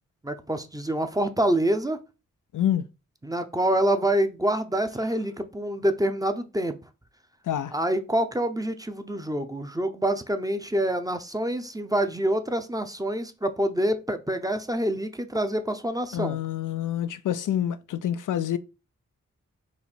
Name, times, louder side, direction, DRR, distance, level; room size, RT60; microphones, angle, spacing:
voice 1, 0.2-2.0 3.2-6.8 7.7-16.4, right 1 dB, 10° right, 0.7 m, -26 dB
voice 2, 2.5-2.8 7.5-7.7 16.1-18.6, left 10 dB, 75° left, 0.5 m, -27 dB
4.2 x 2.6 x 4.3 m
cardioid pair, 45°, 31 cm